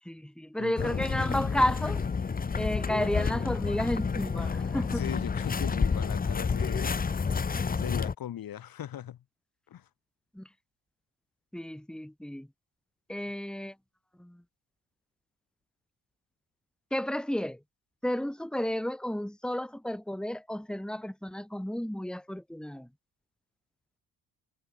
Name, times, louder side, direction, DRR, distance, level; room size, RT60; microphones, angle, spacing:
voice 1, 0.1-2.0 2.5-5.0 10.4-10.5 11.5-12.5 13.1-13.7 14.2-14.4 16.9-17.6 18.0-22.9, left 1 dB, ahead, 3.6 m, -32 dB
voice 2, 0.6-1.0 4.9-7.0 7.8-9.2 9.7-9.9, left 11 dB, 60° left, 5.3 m, -39 dB
sound 1, 0.8-8.1, left 5 dB, 20° left, 1.0 m, -29 dB
cardioid pair, 90°, 39 cm